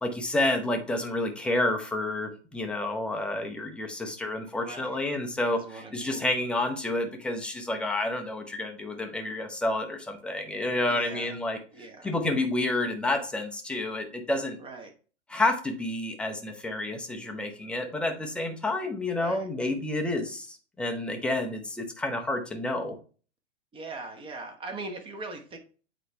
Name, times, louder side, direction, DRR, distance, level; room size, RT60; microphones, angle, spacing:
voice 1, 0.0-11.6 12.0-14.6 15.3-22.9, left 2 dB, 5° left, 3 dB, 0.7 m, -29 dB
voice 2, 4.6-5.0 5.5-6.2 10.9-11.3 11.7-12.2 14.6-14.9 19.1-19.5 23.7-25.6, right 3 dB, 15° right, 4 dB, 1.1 m, -41 dB
7.8 x 4.9 x 3.3 m, 0.38 s
figure-of-eight pair, 110°, 36 cm